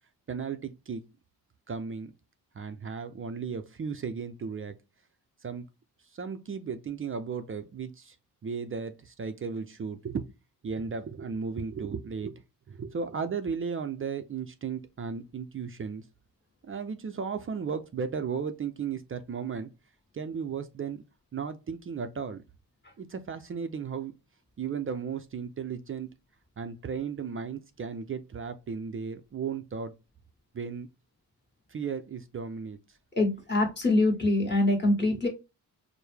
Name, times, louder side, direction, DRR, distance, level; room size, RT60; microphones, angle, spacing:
voice 1, 0.3-1.0 1.7-2.1 2.5-4.8 5.4-5.7 6.1-8.2 8.4-10.2 10.6-16.0 16.7-19.7 20.1-21.0 21.3-22.4 23.0-24.1 24.6-26.1 26.6-29.9 30.5-30.9 31.7-33.0, right 6 dB, 35° right, 0.4 m, -35 dB
voice 2, 33.1-35.3, left 2 dB, 30° left, 1.5 m, -24 dB
4.5 x 2.1 x 3.3 m
wide cardioid pair, 120°, 38 cm